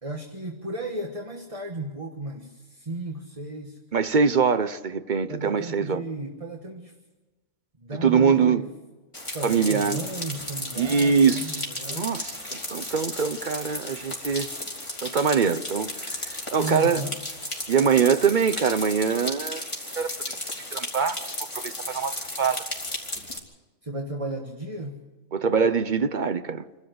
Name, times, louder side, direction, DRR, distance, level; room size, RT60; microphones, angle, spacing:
voice 1, 0.0-3.8 5.3-6.9 7.8-8.7 9.3-12.2 16.5-17.2 23.8-25.0, right 2 dB, 25° right, 1.5 m, -34 dB
voice 2, 3.9-6.0 8.0-8.6 9.4-10.0 10.8-11.6 11.9-14.5 15.0-16.2 16.5-17.0 17.7-19.6 20.0-20.1 20.7-22.6 25.3-26.6, right 6 dB, 45° right, 0.7 m, -23 dB
sound 1, 9.1-23.4, left 1 dB, 20° left, 3.2 m, -34 dB
27.5 x 12.5 x 7.9 m
omnidirectional pair, 1.4 m